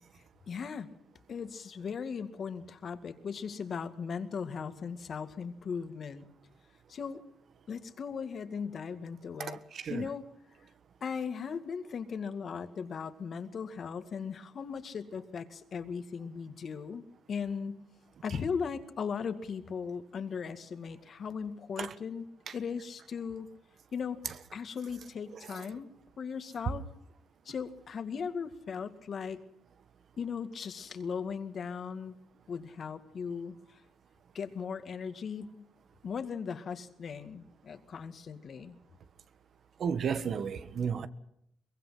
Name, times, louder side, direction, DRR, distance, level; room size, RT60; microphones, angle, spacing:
voice 1, 0.5-0.9 1.3-6.3 6.9-7.2 7.7-9.6 9.9-10.3 11.0-17.8 18.2-22.3 22.5-23.5 23.9-24.2 24.5-25.9 26.2-26.8 27.5-29.4 30.2-32.2 32.5-33.8 34.3-35.7 36.0-38.8, left 6 dB, 50° left, 2.2 m, -38 dB
voice 2, 9.4-10.0 21.8-21.9 39.8-41.1, right 6 dB, 55° right, 1.4 m, -33 dB
23.0 x 21.5 x 5.9 m
cardioid pair, 90°, 0 cm